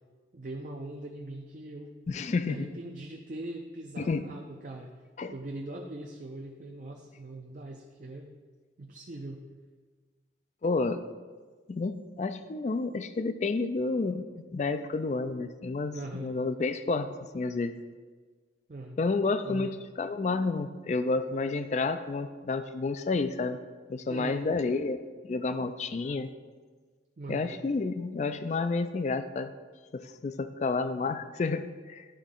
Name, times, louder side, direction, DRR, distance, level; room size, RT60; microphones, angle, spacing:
voice 1, 0.3-1.9 2.4-4.9 5.3-8.3 8.8-9.4 15.9-16.4 18.7-19.0 19.4-19.8 24.1-24.5 27.2-27.6, right 2 dB, 45° right, 1 dB, 0.5 m, -41 dB
voice 2, 2.1-2.7 4.0-4.2 5.2-5.3 10.6-11.1 11.7-14.3 14.5-17.8 19.0-23.6 23.9-26.3 27.3-29.5 29.9-32.1, left 3 dB, 40° left, 11 dB, 0.3 m, -30 dB
11.5 x 4.0 x 3.7 m, 1.5 s
head